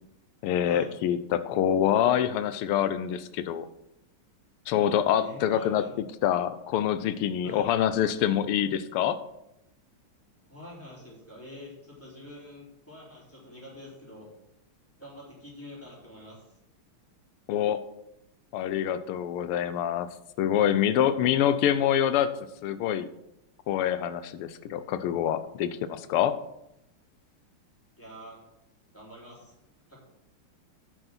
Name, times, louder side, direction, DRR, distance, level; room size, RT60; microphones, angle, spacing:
voice 1, 0.4-3.7 4.7-9.2 17.5-17.8 18.5-20.1 20.4-22.3 22.6-23.1 23.7-26.4, left 10 dB, 90° left, 12 dB, 1.6 m, -26 dB
voice 2, 5.2-5.9 7.4-7.7 10.5-14.3 15.0-16.5 28.0-28.4 28.9-29.5 29.9-30.0, left 1 dB, 5° left, -5 dB, 3.7 m, -46 dB
9.3 x 6.3 x 5.8 m, 0.84 s
omnidirectional pair, 2.4 m